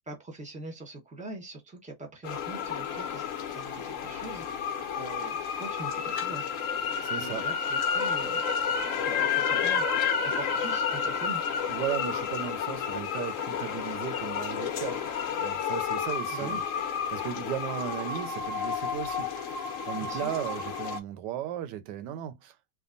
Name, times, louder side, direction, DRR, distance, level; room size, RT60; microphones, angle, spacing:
voice 1, 0.1-4.6 4.9-6.5 7.2-8.4 8.9-9.9 10.2-11.4 16.3-16.6 20.0-20.3, right 3 dB, 5° right, 0.9 m, -42 dB
sound 1, 2.2-21.0, left 7 dB, 60° left, 1.0 m, -31 dB
voice 2, 7.0-7.4 11.7-15.0 15.4-16.6 17.1-22.6, right 11 dB, 85° right, 1.2 m, -36 dB
3.4 x 2.2 x 3.8 m
omnidirectional pair, 1.8 m